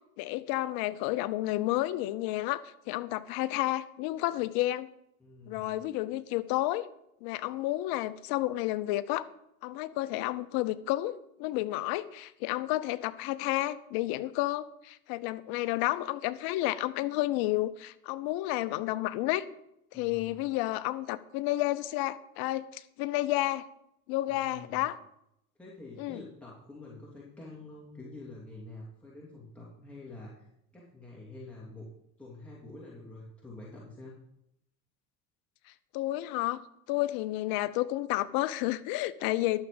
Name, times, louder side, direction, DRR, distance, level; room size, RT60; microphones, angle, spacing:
voice 1, 0.2-4.9 5.5-6.9 7.2-9.3 9.6-19.4 19.9-23.6 24.1-25.0 26.0-26.2 35.9-36.6 36.9-39.7, left 16 dB, 55° left, 16 dB, 0.8 m, -31 dB
voice 2, 5.2-5.7 19.9-20.4 24.3-24.9 25.6-31.9 32.2-34.2, left 2 dB, 5° left, -6 dB, 2.8 m, -47 dB
12.0 x 7.2 x 5.1 m, 0.81 s
hypercardioid pair, 90°, 43 cm